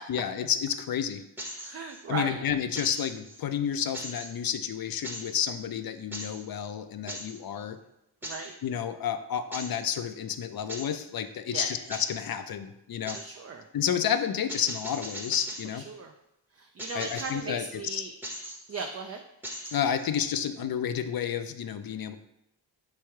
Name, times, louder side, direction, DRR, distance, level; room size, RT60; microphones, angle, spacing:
voice 1, 0.1-1.2 2.1-7.8 8.6-13.2 13.7-15.8 16.9-18.1 19.7-22.2, left 8 dB, 50° left, 10 dB, 0.5 m, -30 dB
sound 1, 1.4-2.0 2.8-3.4 3.9-4.6 5.0-5.4 6.1-6.5 7.1-7.4 8.2-8.6 9.5-9.8 10.7-11.0 11.9-12.2 13.1-13.4 14.5-15.8 16.8-17.5 18.2-18.9 19.4-20.1, equal, 5° right, 0.8 m, -40 dB
voice 2, 1.6-2.4 8.2-8.5 11.5-11.7 13.1-13.7 15.7-16.1 16.5-18.1 18.7-19.2, right 4 dB, 35° right, 4 dB, 0.4 m, -37 dB
3.4 x 3.3 x 4.5 m, 0.85 s
cardioid pair, 55°, 46 cm